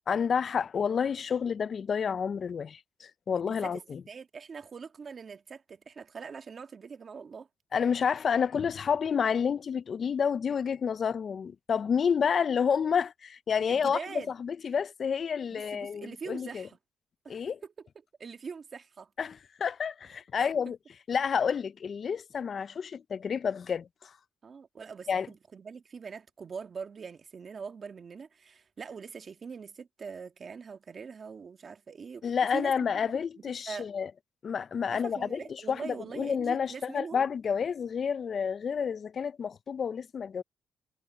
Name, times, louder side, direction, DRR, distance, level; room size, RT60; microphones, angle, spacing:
voice 1, 0.1-4.0 7.7-14.0 14.4-16.7 17.3-17.6 19.2-20.8 21.1-24.1 25.1-25.3 32.2-34.1 34.4-40.4, left 6 dB, 50° left, 0.4 m, -29 dB
voice 2, 3.3-7.5 13.7-14.3 15.5-16.8 17.2-17.7 18.2-19.1 20.4-20.5 24.4-33.0 33.7-33.9 34.9-37.2, right 5 dB, 45° right, 1.6 m, -43 dB
cardioid pair, 90°, 0 cm